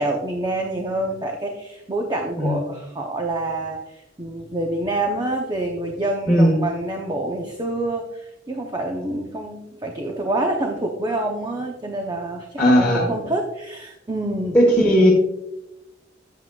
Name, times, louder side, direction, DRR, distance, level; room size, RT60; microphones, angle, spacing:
voice 1, 0.0-14.6, right 2 dB, 25° right, 2 dB, 0.7 m, -27 dB
voice 2, 6.3-6.6 12.6-13.1 14.5-15.1, equal, 5° left, -5 dB, 1.3 m, -16 dB
9.2 x 8.2 x 2.3 m, 0.89 s
head